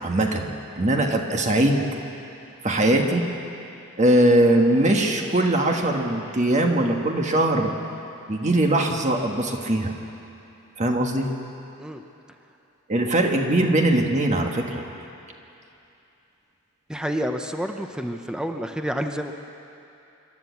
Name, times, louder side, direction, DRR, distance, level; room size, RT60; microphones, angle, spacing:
voice 1, 0.0-0.5 0.8-1.8 2.6-3.3 4.0-7.7 8.3-9.9 10.8-11.3 12.9-14.8, right 1 dB, 35° right, 2 dB, 1.5 m, -21 dB
voice 2, 16.9-19.3, equal, 5° right, 5 dB, 0.7 m, -29 dB
26.0 x 12.5 x 8.3 m, 2.8 s
head